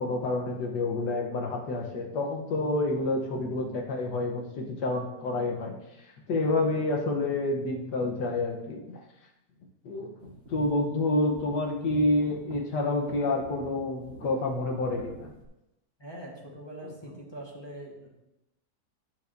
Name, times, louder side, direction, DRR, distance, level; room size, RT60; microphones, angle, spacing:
voice 1, 0.0-5.8 6.3-9.0 9.8-15.3 16.8-16.9, left 2 dB, 80° left, 2 dB, 1.6 m, -28 dB
sound 1, 10.2-10.7 11.3-12.6 13.1-14.3 14.6-15.5, right 1 dB, 50° right, 1.6 m, -46 dB
voice 2, 16.0-18.1, right 1 dB, 15° left, -2 dB, 1.2 m, -43 dB
9.3 x 7.3 x 2.6 m, 0.95 s
omnidirectional pair, 1.8 m